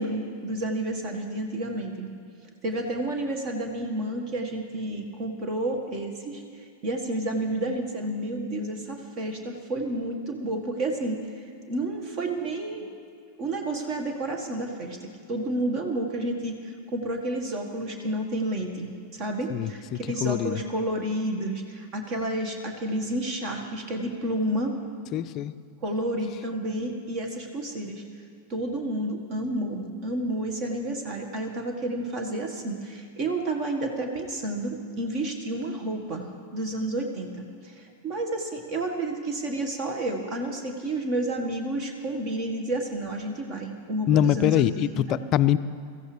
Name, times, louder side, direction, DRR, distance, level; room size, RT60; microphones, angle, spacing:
voice 1, 0.0-2.1 2.6-13.0 13.4-24.7 25.8-28.0 28.5-45.2, right 1 dB, 40° right, 4 dB, 1.6 m, -30 dB
voice 2, 19.5-20.6 25.1-25.5 44.1-45.6, left 11 dB, 35° left, 14 dB, 0.4 m, -24 dB
23.5 x 14.5 x 3.4 m, 2.1 s
figure-of-eight pair, 90°, 0 cm